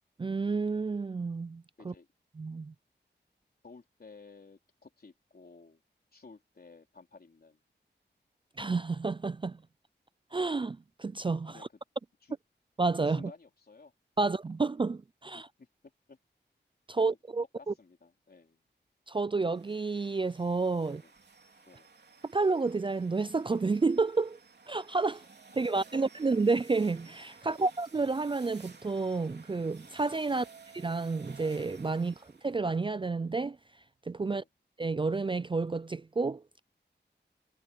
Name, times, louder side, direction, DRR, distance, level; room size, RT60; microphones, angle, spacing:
voice 1, 0.2-1.9 2.4-2.7 8.6-9.6 10.3-11.6 12.8-13.3 14.2-15.5 16.9-17.7 19.1-21.0 22.3-24.4 24.7-25.2 25.5-30.4 30.7-32.1 32.4-33.6 34.1-34.4 34.8-36.6, right 3 dB, 25° right, 0.4 m, -30 dB
voice 2, 3.6-5.8 6.1-7.6 11.5-11.7 12.2-12.4 13.0-13.9 14.2-14.3 15.3-16.2 17.0-17.2 17.6-18.6 20.9-21.1 21.7-21.9 25.9-26.0 27.4-27.6 30.3-30.5 34.3-34.5, left 4 dB, 55° left, 3.7 m, -54 dB
sound 1, 19.4-32.7, right 4 dB, 65° right, 3.4 m, -55 dB
wide cardioid pair, 95°, 19 cm